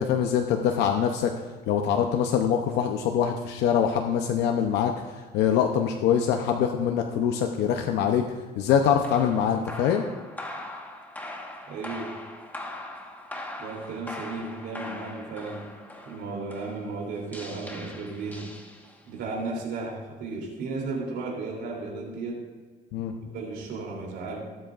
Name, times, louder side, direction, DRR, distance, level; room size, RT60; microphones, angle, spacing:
voice 1, 0.0-1.3 1.7-4.9 5.3-8.2 8.6-10.0 22.9-23.1, left 8 dB, 85° left, 4 dB, 0.7 m, -24 dB
sound 1, 9.0-19.2, left 1 dB, 10° left, 1.4 m, -41 dB
voice 2, 11.7-12.2 13.6-15.7 16.0-18.5 19.1-22.4 23.2-24.4, right 3 dB, 80° right, -1 dB, 3.1 m, -34 dB
17.5 x 8.0 x 2.5 m, 1.4 s
cardioid pair, 110°, 17 cm